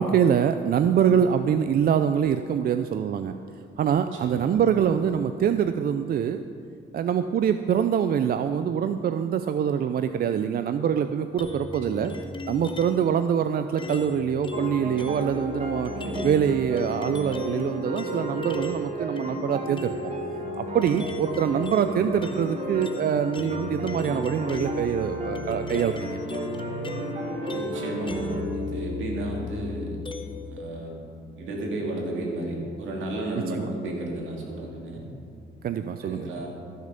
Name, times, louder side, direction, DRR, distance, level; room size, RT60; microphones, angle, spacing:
voice 1, 0.0-3.3 3.8-6.4 6.9-12.1 12.5-15.9 16.2-19.9 20.6-26.2 33.5-33.7 35.6-36.3, right 8 dB, 50° right, 9 dB, 0.4 m, -24 dB
voice 2, 4.1-4.5 11.9-12.1 15.9-16.3 20.7-20.9 27.5-30.0 30.4-31.0 31.4-35.1 36.0-36.5, right 2 dB, 75° right, -1 dB, 2.4 m, -33 dB
sound 1, 11.4-13.1 13.8-18.9 19.2-30.6, left 4 dB, 25° left, 0.9 m, -36 dB
sound 2, 14.5-28.5, right 2 dB, 35° right, 1.9 m, -34 dB
14.0 x 6.6 x 5.2 m, 2.4 s
cardioid pair, 90°, 20 cm